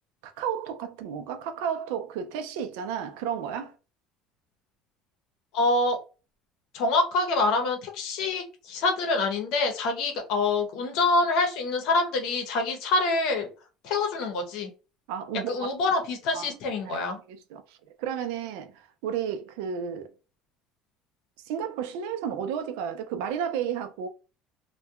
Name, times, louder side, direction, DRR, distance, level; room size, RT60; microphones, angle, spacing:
voice 1, 0.2-3.7 15.1-15.7 16.3-16.5 16.9-17.0 17.3-20.1 21.4-24.1, right 8 dB, 85° right, 0.4 m, -32 dB
voice 2, 5.5-6.0 6.7-13.5 13.8-14.7 15.5-17.2, left 3 dB, 70° left, 0.8 m, -26 dB
2.7 x 2.2 x 2.3 m
cardioid pair, 120°, 0 cm